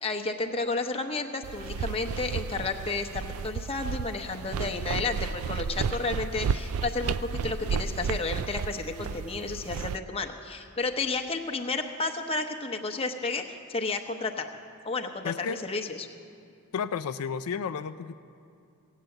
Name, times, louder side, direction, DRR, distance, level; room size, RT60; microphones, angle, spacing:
voice 1, 0.0-14.5 14.8-16.1, left 3 dB, 25° left, 3 dB, 0.8 m, -32 dB
sound 1, 1.4-10.0, right 6 dB, 70° right, 0.3 m, -33 dB
voice 2, 15.2-15.6 16.7-18.1, left 6 dB, 75° left, 9 dB, 0.4 m, -32 dB
17.0 x 8.3 x 7.8 m, 2.4 s
head